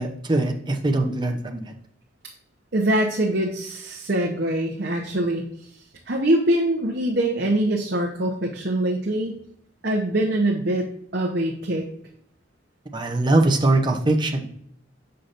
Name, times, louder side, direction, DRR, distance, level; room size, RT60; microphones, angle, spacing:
voice 1, 0.0-1.7 12.9-14.6, right 2 dB, 25° right, 4 dB, 0.7 m, -22 dB
voice 2, 2.7-5.5 6.1-9.4 9.8-10.9 11.1-11.9, right 1 dB, 55° right, 0 dB, 0.8 m, -23 dB
6.6 x 5.7 x 2.5 m, 0.66 s
head